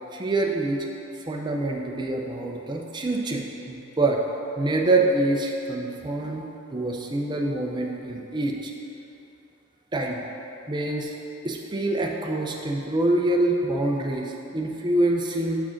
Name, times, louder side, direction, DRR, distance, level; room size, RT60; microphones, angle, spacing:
voice 1, 0.1-0.9 1.3-4.2 4.6-6.4 6.7-8.7 9.9-10.2 10.7-11.1 11.4-15.6, right 2 dB, 20° right, 0 dB, 0.6 m, -25 dB
6.3 x 4.8 x 5.8 m, 3.0 s
head